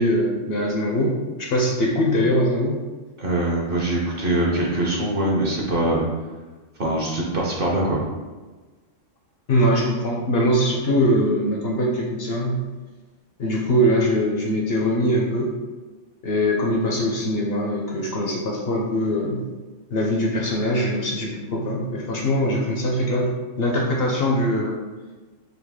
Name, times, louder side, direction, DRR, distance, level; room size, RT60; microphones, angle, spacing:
voice 1, 0.0-2.8 9.5-12.6 13.4-15.5 16.2-19.4 19.9-23.3 23.6-24.8, equal, 60° left, -1 dB, 0.7 m, -22 dB
voice 2, 3.2-6.0 6.8-8.0, right 1 dB, 50° right, -2 dB, 0.8 m, -23 dB
4.0 x 2.7 x 3.5 m, 1.3 s
omnidirectional pair, 1.3 m